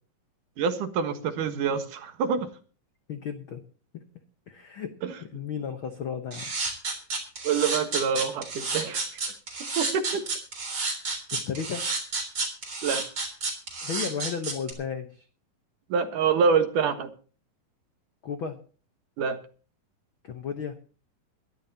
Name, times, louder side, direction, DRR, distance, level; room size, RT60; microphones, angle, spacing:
voice 1, 0.6-2.5 5.0-5.1 7.4-9.1 9.8-10.2 12.8-13.0 15.9-17.1 19.2-19.4, right 6 dB, 70° right, 7 dB, 2.9 m, -26 dB
voice 2, 3.1-3.6 3.9-4.0 4.5-4.9 5.2-6.5 11.3-11.9 13.8-15.2 18.2-18.6 20.2-20.8, left 7 dB, 90° left, 7 dB, 1.1 m, -34 dB
sound 1, 6.3-14.7, right 3 dB, 35° right, 4.2 m, -30 dB
21.5 x 13.0 x 2.8 m, 0.39 s
omnidirectional pair, 4.0 m